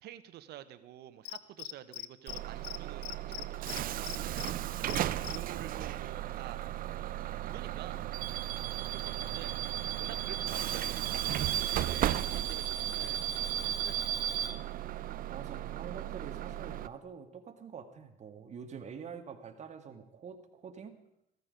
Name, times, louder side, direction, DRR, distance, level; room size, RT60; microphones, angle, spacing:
voice 1, 0.0-4.5 4.8-6.6 7.4-8.1 8.9-9.6 10.0-13.5 13.8-14.5, right 12 dB, 75° right, 12 dB, 1.1 m, -49 dB
Cricket, 1.3-2.4 2.6-2.8 3.0-4.5 4.9-5.4, left 17 dB, 85° left, 0.6 m, -41 dB
Bus / Alarm, 2.3-16.9, right 12 dB, 60° right, 0.6 m, -35 dB
voice 2, 9.0-9.4 15.3-21.0, right 6 dB, 45° right, 6 dB, 1.8 m, -46 dB
15.0 x 13.5 x 5.2 m, 0.81 s
cardioid pair, 110°, 17 cm